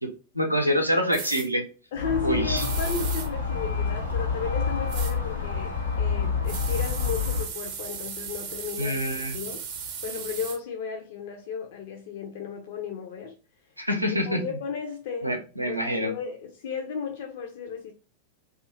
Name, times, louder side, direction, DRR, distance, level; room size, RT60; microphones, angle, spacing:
voice 1, 0.0-1.7 2.2-2.6 8.8-9.4 13.8-14.6 15.2-16.2, equal, 90° right, 0.5 m, -26 dB
sound 1, 1.1-1.5 2.6-3.3 4.9-5.1 6.5-10.6, right 7 dB, 45° right, 0.6 m, -36 dB
voice 2, 1.9-9.0 9.3-9.6 10.0-13.3 14.3-15.4 15.7-17.9, left 5 dB, 55° left, 0.4 m, -34 dB
sound 2, 2.0-7.5, left 5 dB, 80° left, 0.9 m, -28 dB
2.6 x 2.4 x 2.7 m
figure-of-eight pair, 90°, 0 cm